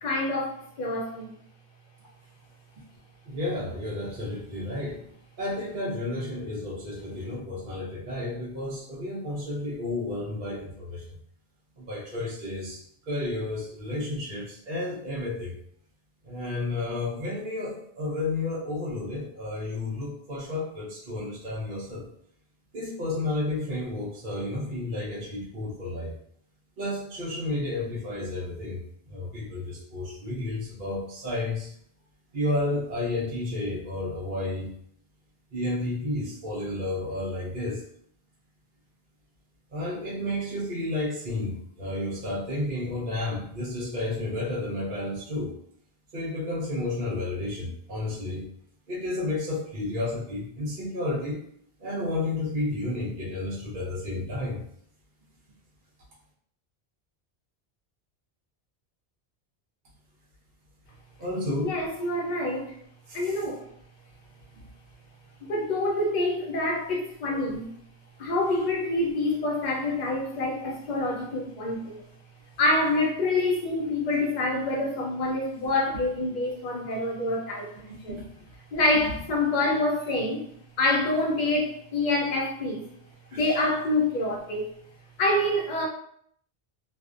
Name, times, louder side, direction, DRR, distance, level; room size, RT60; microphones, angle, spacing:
voice 1, 0.0-1.3 61.6-62.7 63.1-63.7 65.5-67.7 68.2-72.0 72.6-77.7 78.0-78.2 78.7-80.4 80.8-82.8 83.3-84.7 85.2-85.9, left 2 dB, 55° left, -1 dB, 0.6 m, -26 dB
voice 2, 3.3-5.0 5.4-11.0 11.8-12.8 13.1-15.5 16.2-22.0 22.7-26.1 26.8-28.8 29.1-31.7 32.3-34.7 35.5-37.8 39.7-45.5 46.1-48.4 48.9-51.4 51.8-54.6 61.2-61.7 63.1-63.4 67.3-67.5 78.1-78.2 83.3-83.4, left 2 dB, 60° right, -6 dB, 0.8 m, -31 dB
2.4 x 2.1 x 2.4 m, 0.66 s
omnidirectional pair, 1.1 m